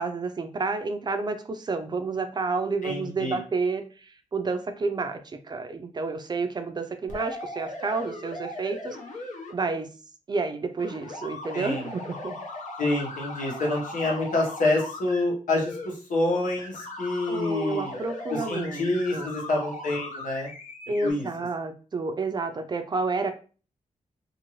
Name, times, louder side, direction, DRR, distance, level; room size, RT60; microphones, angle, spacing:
voice 1, 0.0-9.0 9.5-9.9 10.3-12.4 17.3-19.3 20.9-23.3, right 3 dB, 35° right, 7 dB, 0.4 m, -30 dB
voice 2, 2.8-3.4 11.5-11.9 12.8-17.9 18.3-20.5 21.0-21.3, left 2 dB, 85° left, -2 dB, 1.2 m, -27 dB
sound 1, 7.1-9.5 10.8-15.2 15.6-15.9 16.6-21.1, left 2 dB, 70° left, 0.8 m, -38 dB
2.6 x 2.6 x 3.0 m, 0.36 s
wide cardioid pair, 120°, 13 cm